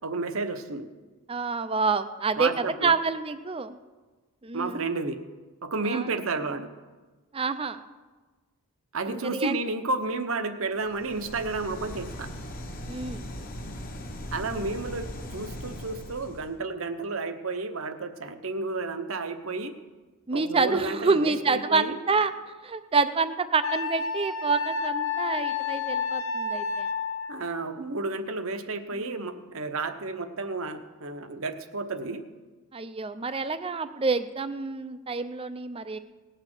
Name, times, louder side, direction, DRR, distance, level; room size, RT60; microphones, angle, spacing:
voice 1, 0.0-0.9 2.4-2.9 4.5-5.2 5.6-6.7 8.9-12.3 14.3-19.7 20.3-21.9 27.3-32.2, right 3 dB, 65° right, 8 dB, 1.0 m, -31 dB
voice 2, 1.3-3.8 4.4-4.8 5.9-6.1 7.3-7.8 9.1-9.5 12.9-13.3 20.3-22.3 22.6-26.9 28.9-29.2 32.7-36.0, right 4 dB, 25° right, 11 dB, 0.5 m, -27 dB
sound 1, 10.8-16.6, left 1 dB, 40° left, 1.1 m, -39 dB
Wind instrument woodwind instrument, 23.6-27.4, left 5 dB, 65° left, 1.0 m, -30 dB
18.5 x 6.7 x 6.1 m, 1.3 s
head